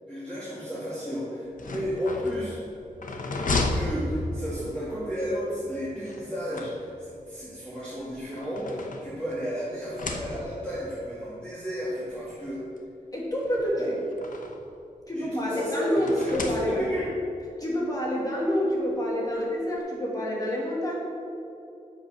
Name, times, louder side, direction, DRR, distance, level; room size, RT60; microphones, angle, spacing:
voice 1, 0.0-2.6 3.7-12.6 13.8-13.9 15.1-17.1, equal, 5° left, -10 dB, 2.3 m, -33 dB
sound 1, 1.5-4.8 6.0-7.2 8.0-9.4 9.8-10.8 11.7-11.8 12.1-12.2 13.4-14.7 16.0-17.1, left 2 dB, 65° left, 0.9 m, -33 dB
voice 2, 13.1-13.9 15.1-16.8 17.6-20.9, equal, 25° left, -4 dB, 1.8 m, -27 dB
8.2 x 6.7 x 6.3 m, 2.8 s
wide cardioid pair, 100°, 15 cm